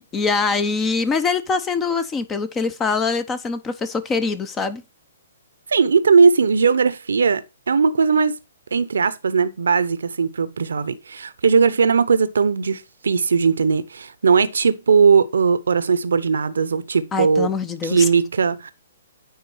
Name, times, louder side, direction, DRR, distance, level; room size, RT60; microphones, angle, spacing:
voice 1, 0.0-4.8 17.1-18.1, left 4 dB, 20° left, 0.7 m, -23 dB
voice 2, 5.7-8.3 8.7-17.5 17.8-18.7, right 5 dB, 80° right, 0.7 m, -18 dB
9.5 x 3.9 x 5.6 m
hypercardioid pair, 135°, 0 cm